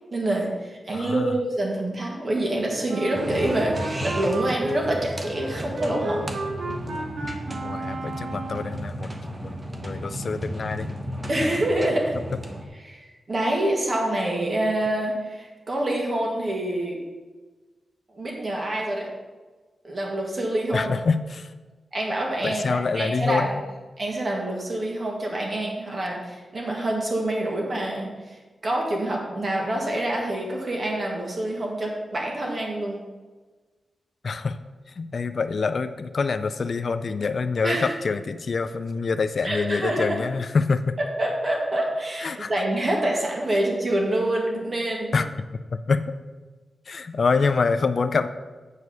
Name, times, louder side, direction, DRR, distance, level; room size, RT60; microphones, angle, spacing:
voice 1, 0.1-6.3 11.3-12.1 12.8-17.0 18.1-19.1 19.8-21.0 21.9-23.5 24.0-33.0 37.6-37.9 39.4-40.2 41.0-45.2, right 1 dB, 35° right, -1 dB, 1.8 m, -26 dB
voice 2, 0.9-1.3 7.6-9.4 9.8-11.0 20.7-21.6 22.4-23.6 34.2-34.6 34.9-41.0 42.2-42.5 45.1-45.3 45.7-46.1 46.9-48.3, left 4 dB, 45° left, 10 dB, 0.4 m, -26 dB
Wind instrument woodwind instrument, 2.9-8.8, right 2 dB, 75° right, 1.3 m, -33 dB
sound 1, 3.1-12.7, equal, 20° right, 0.9 m, -34 dB
8.0 x 4.7 x 6.9 m, 1.3 s
wide cardioid pair, 165°, 0 cm